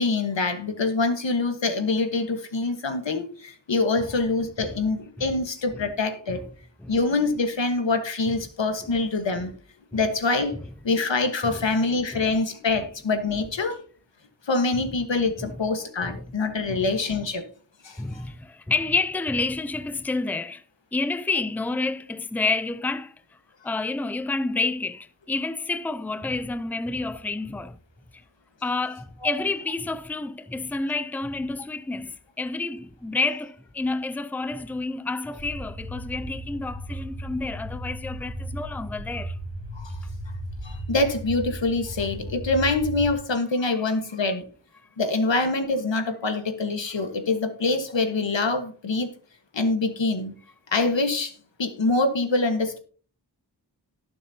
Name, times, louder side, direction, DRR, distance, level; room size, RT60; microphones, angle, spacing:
voice 1, 0.0-6.4 6.9-9.5 9.9-10.5 10.8-13.8 14.5-17.4 17.8-18.2 39.7-39.9 40.6-44.4 45.0-49.1 49.5-50.3 50.7-51.3 51.6-52.8, left 3 dB, 90° left, 1.5 m, -25 dB
voice 2, 18.0-20.6 20.9-23.1 23.6-27.8 28.6-39.4 43.8-43.9, left 3 dB, 5° left, 0.5 m, -29 dB
sound 1, 35.4-43.1, right 1 dB, 15° right, 2.8 m, -35 dB
18.5 x 7.2 x 2.8 m
wide cardioid pair, 60°, 43 cm